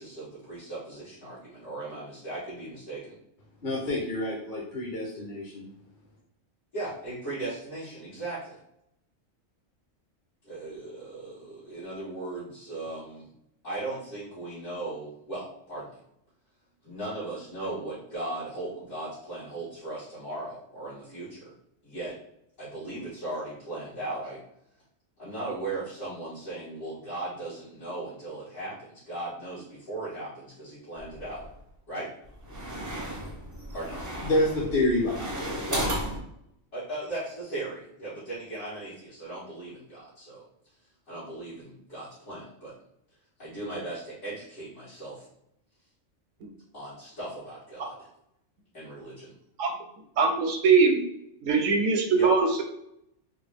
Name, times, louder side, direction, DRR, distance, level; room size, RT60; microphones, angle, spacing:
voice 1, 0.0-3.2 6.7-8.6 10.4-13.3 13.6-15.9 16.8-21.5 21.8-22.2 22.6-24.4 25.2-31.5 31.9-32.1 33.7-34.0 36.7-40.4 41.1-42.7 43.4-45.3 46.7-48.1 48.7-49.4 52.1-52.4, right 2 dB, 80° left, -12 dB, 1.9 m, -37 dB
voice 2, 3.6-5.7 34.2-35.9, left 1 dB, 50° left, -4 dB, 0.8 m, -28 dB
sound 1, 31.0-31.6 32.2-36.2, right 1 dB, 30° right, 0.3 m, -34 dB
voice 3, 50.2-51.0 51.4-52.6, right 5 dB, 80° right, 4 dB, 0.9 m, -22 dB
3.6 x 2.2 x 3.3 m, 0.77 s
omnidirectional pair, 1.3 m